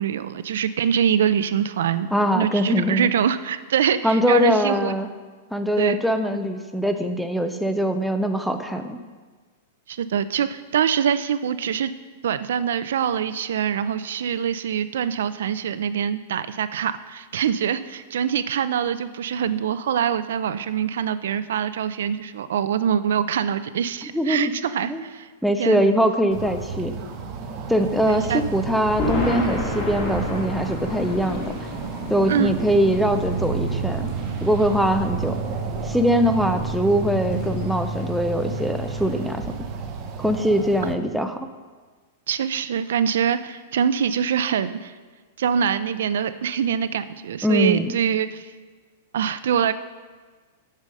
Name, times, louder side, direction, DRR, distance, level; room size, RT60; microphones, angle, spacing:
voice 1, 0.0-5.0 5.8-6.0 9.9-11.9 12.2-25.3 25.6-25.8 28.1-28.4 32.3-32.5 42.3-44.9 45.4-48.5 49.1-49.7, right 8 dB, 70° right, 13 dB, 0.4 m, -24 dB
voice 2, 2.1-3.1 4.0-5.1 5.5-9.0 24.1-24.5 24.8-25.0 25.4-26.9 27.7-31.7 32.1-34.1 34.4-35.4 35.8-39.4 40.2-41.5 47.4-47.9, equal, ahead, 5 dB, 0.3 m, -22 dB
sound 1, 26.3-40.9, right 4 dB, 25° right, 0.7 m, -31 dB
Thunder, 27.8-39.3, left 1 dB, 25° left, 2.1 m, -33 dB
8.1 x 5.5 x 6.5 m, 1.4 s
supercardioid pair, 180°, 0 cm